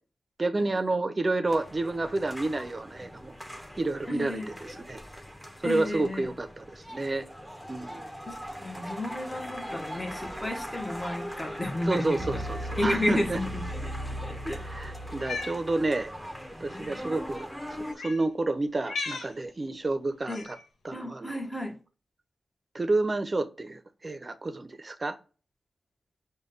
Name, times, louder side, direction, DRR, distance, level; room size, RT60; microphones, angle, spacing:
voice 1, 0.4-3.4 3.8-4.4 4.9-5.0 5.6-7.3 7.7-8.0 11.9-13.4 14.6-16.1 16.6-20.4 20.8-21.3 22.7-25.2, right 2 dB, 40° right, 0.6 m, -30 dB
sound 1, 1.5-17.9, equal, 5° left, 0.9 m, -39 dB
voice 2, 4.1-4.5 5.6-6.3 8.3-12.4 12.8-14.6 20.3-20.5 20.9-21.8, left 1 dB, 20° left, 1.1 m, -32 dB
Cat, 15.1-15.6 16.6-16.8 17.9-18.2 18.8-19.3 20.3-20.6, left 4 dB, 85° left, 0.6 m, -36 dB
5.1 x 2.2 x 3.8 m
cardioid pair, 45°, 0 cm